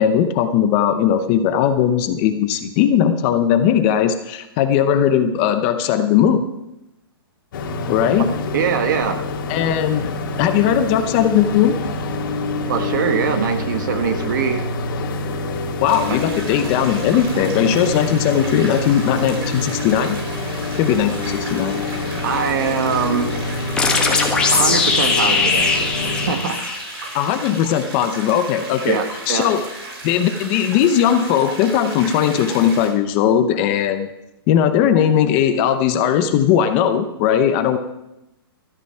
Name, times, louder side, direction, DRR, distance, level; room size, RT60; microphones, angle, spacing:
voice 1, 0.0-6.4 7.9-8.3 9.5-10.1 10.4-11.8 15.8-20.2 20.8-21.8 23.9-24.0 27.1-29.0 29.3-29.6 30.0-34.1 34.5-37.8, left 9 dB, 25° left, 8 dB, 0.7 m, -18 dB
sound 1, 7.5-26.3, left 2 dB, 55° left, 2.1 m, -26 dB
voice 2, 8.5-9.2 12.6-14.7 16.1-16.2 22.2-23.3 24.5-25.9 26.3-26.6 28.9-29.5, right 7 dB, 50° right, 7 dB, 1.5 m, -22 dB
sound 2, 15.9-32.9, right 2 dB, 75° right, 5.5 m, -35 dB
sound 3, 23.8-27.3, left 4 dB, 5° left, 1.3 m, -19 dB
13.0 x 9.3 x 5.6 m, 0.90 s
hypercardioid pair, 165°, 13 cm